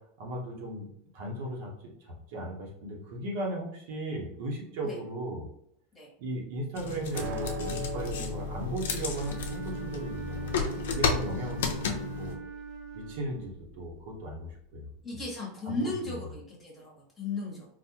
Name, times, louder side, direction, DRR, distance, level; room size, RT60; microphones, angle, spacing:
voice 1, 0.2-0.9 1.1-1.7 2.0-5.5 6.2-11.7 12.0-12.4 12.9-15.2 15.7-16.1, right 1 dB, 65° right, -1 dB, 1.2 m, -37 dB
sound 1, 6.7-12.3, left 4 dB, 90° left, 0.6 m, -33 dB
sound 2, 7.1-13.7, left 1 dB, 45° right, 0.4 m, -40 dB
Wind instrument woodwind instrument, 9.0-13.8, right 6 dB, 10° right, 0.8 m, -43 dB
voice 2, 15.0-17.7, left 2 dB, 10° left, -5 dB, 1.4 m, -36 dB
4.0 x 2.5 x 2.9 m, 0.71 s
supercardioid pair, 150°, 0 cm